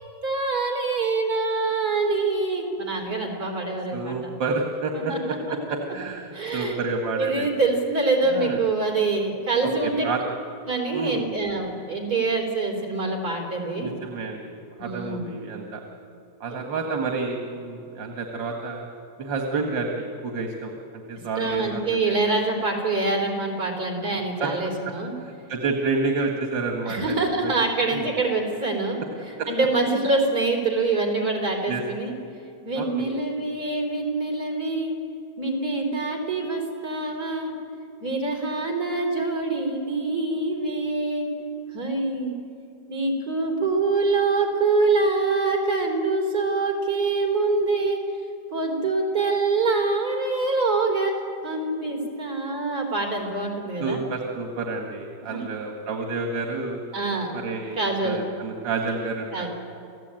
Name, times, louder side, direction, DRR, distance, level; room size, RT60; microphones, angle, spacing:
voice 1, 0.2-4.2 4.9-5.2 5.5-5.6 6.3-6.8 7.1-10.0 10.7-13.9 14.8-15.3 21.4-25.1 26.9-32.1 32.6-34.9 35.4-37.5 38.0-41.3 41.7-42.4 42.9-48.0 48.5-54.0 55.3-55.4 56.9-57.3 57.8-58.2 59.3-59.5, right 3 dB, 55° right, 1 dB, 4.3 m, -25 dB
voice 2, 3.9-4.9 5.7-7.5 8.3-8.6 9.8-10.2 10.9-11.2 13.8-14.5 14.8-15.8 16.4-18.9 19.2-22.2 24.4-24.5 25.2-27.5 27.9-28.1 29.4-29.5 31.7-31.8 32.8-33.1 53.8-56.8 57.3-59.5, right 3 dB, 85° right, 2 dB, 2.5 m, -29 dB
29.0 x 16.0 x 9.0 m, 2.8 s
omnidirectional pair, 2.0 m